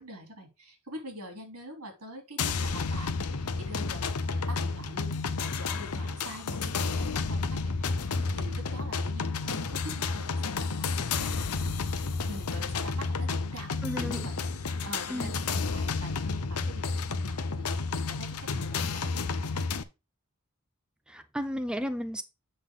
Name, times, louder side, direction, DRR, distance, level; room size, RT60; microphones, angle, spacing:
voice 1, 0.0-19.6, right 1 dB, 80° right, 3.2 m, -45 dB
sound 1, 2.4-19.8, left 4 dB, 90° left, 0.8 m, -31 dB
voice 2, 13.8-14.3 15.1-15.3 21.1-22.2, equal, 5° right, 0.5 m, -33 dB
8.0 x 5.8 x 3.7 m
head